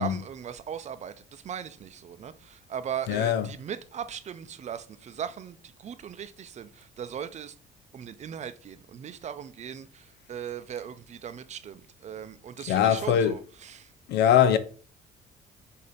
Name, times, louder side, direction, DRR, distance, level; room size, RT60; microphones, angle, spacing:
voice 1, 0.0-7.5 7.9-13.9, right 8 dB, 45° right, 0.6 m, -38 dB
voice 2, 3.1-3.5 12.7-13.4 14.1-14.6, left 9 dB, 80° left, 0.7 m, -22 dB
6.9 x 2.8 x 5.0 m
cardioid pair, 110°, 17 cm